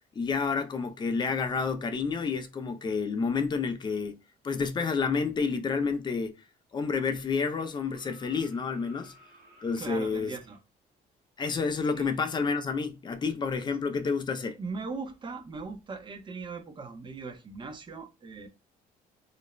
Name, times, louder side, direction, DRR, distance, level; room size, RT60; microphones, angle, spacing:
voice 1, 0.2-4.2 4.4-6.3 6.7-9.1 9.6-10.3 11.4-14.6, left 5 dB, 25° left, 0.4 m, -29 dB
sound 1, 7.4-10.6 12.4-12.5, left 1 dB, 55° right, 0.9 m, -56 dB
voice 2, 9.8-10.6 11.9-12.1 14.6-18.5, right 4 dB, 30° right, 0.5 m, -39 dB
2.4 x 2.0 x 3.0 m
cardioid pair, 110°, 17 cm